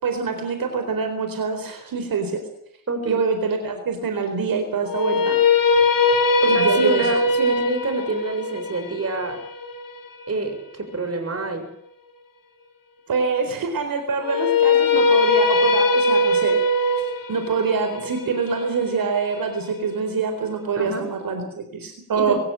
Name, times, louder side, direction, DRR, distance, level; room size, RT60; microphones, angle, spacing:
voice 1, 0.0-2.4 3.1-5.4 6.4-7.1 13.1-17.0 17.3-22.4, right 5 dB, 80° right, 6 dB, 4.3 m, -25 dB
voice 2, 2.9-3.3 6.4-9.4 10.3-11.7 20.8-21.1 22.2-22.4, right 3 dB, 45° right, 7 dB, 6.7 m, -26 dB
sound 1, 4.9-11.0 14.2-20.3, left 3 dB, 70° left, 3.7 m, -21 dB
24.5 x 15.0 x 8.9 m, 0.72 s
cardioid pair, 90°, 34 cm